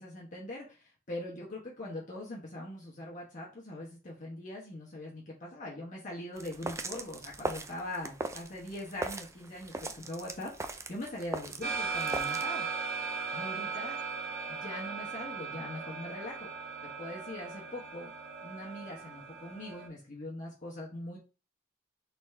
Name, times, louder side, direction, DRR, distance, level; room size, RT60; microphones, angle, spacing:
voice 1, 0.0-12.7 13.3-14.0 14.5-16.5 16.8-18.1 18.4-21.2, left 1 dB, 45° left, -4 dB, 1.1 m, -42 dB
sound 1, 6.4-12.5, right 2 dB, 15° right, 0.4 m, -40 dB
sound 2, 11.6-19.9, right 5 dB, 60° right, 1.0 m, -37 dB
4.1 x 3.4 x 3.2 m, 0.33 s
head